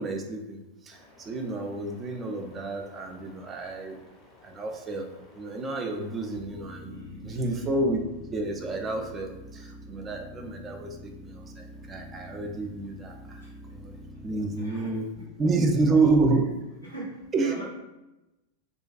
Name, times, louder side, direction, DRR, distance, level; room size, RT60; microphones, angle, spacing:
voice 1, 0.0-4.0 4.4-5.1 5.3-8.0 8.3-14.0 14.2-15.1 15.4-16.4 17.3-17.6, right 3 dB, 25° right, 3 dB, 0.3 m, -29 dB
sound 1, 0.9-14.6, left 1 dB, 25° left, 0.7 m, -47 dB
voice 2, 6.8-7.7 13.4-13.5 14.6-15.3 16.8-17.7, right 1 dB, 85° left, -4 dB, 0.5 m, -43 dB
2.4 x 2.2 x 2.4 m, 1.0 s
figure-of-eight pair, 90°, 0 cm